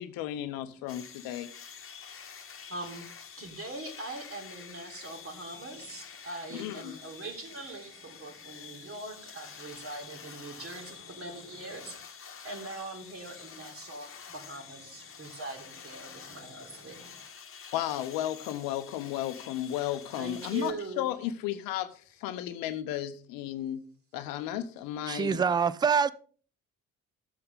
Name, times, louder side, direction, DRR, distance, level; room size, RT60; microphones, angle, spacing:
voice 1, 0.0-1.5 6.5-7.0 17.7-21.9 22.2-23.8 24.1-25.4, left 12 dB, 55° left, 0.8 m, -34 dB
voice 2, 0.6-0.9 2.7-12.0 12.4-17.3 20.1-21.1, right 2 dB, 35° right, 2.5 m, -42 dB
sound 1, 0.9-20.7, left 6 dB, 30° left, 1.4 m, -48 dB
voice 3, 25.1-26.1, right 6 dB, 10° right, 0.4 m, -25 dB
13.5 x 7.7 x 3.7 m
figure-of-eight pair, 45°, 40 cm